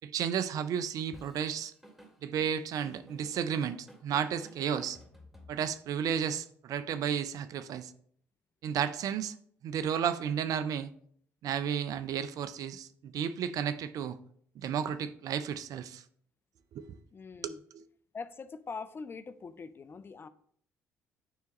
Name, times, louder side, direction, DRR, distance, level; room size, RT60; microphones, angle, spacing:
voice 1, 0.0-1.7 2.2-5.0 5.5-7.9 8.6-9.3 9.6-10.9 11.4-14.2 14.6-16.0 16.7-17.0 17.4-17.8, right 8 dB, 55° right, 0.4 m, -33 dB
Drum kit / Drum, 1.1-5.9, equal, 5° right, 2.2 m, -55 dB
voice 2, 17.1-17.6 18.1-20.3, left 5 dB, 30° left, 0.4 m, -43 dB
9.3 x 3.4 x 3.0 m
hypercardioid pair, 50°, 7 cm